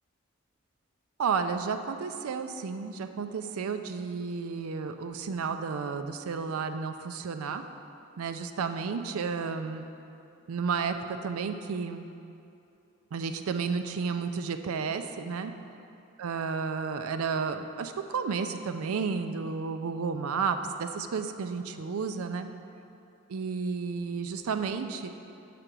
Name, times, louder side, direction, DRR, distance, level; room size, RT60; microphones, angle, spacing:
voice 1, 1.2-7.6 8.2-9.9 10.5-12.0 13.1-15.5 16.2-22.5 23.3-25.1, right 5 dB, 85° right, 8 dB, 0.4 m, -32 dB
6.7 x 5.1 x 6.0 m, 2.7 s
head